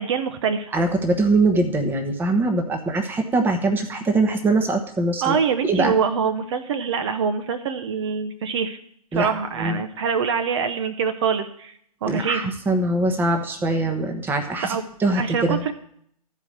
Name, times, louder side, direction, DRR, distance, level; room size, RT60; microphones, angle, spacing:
voice 1, 0.0-0.7 5.2-8.8 9.1-11.7 12.0-12.5 14.6-14.8 15.1-15.7, right 6 dB, 45° right, 8 dB, 0.9 m, -24 dB
voice 2, 0.7-5.4 5.7-5.9 9.1-9.8 12.1-15.7, right 2 dB, 10° right, 5 dB, 1.1 m, -22 dB
13.0 x 5.0 x 7.2 m, 0.65 s
figure-of-eight pair, 115°, 20 cm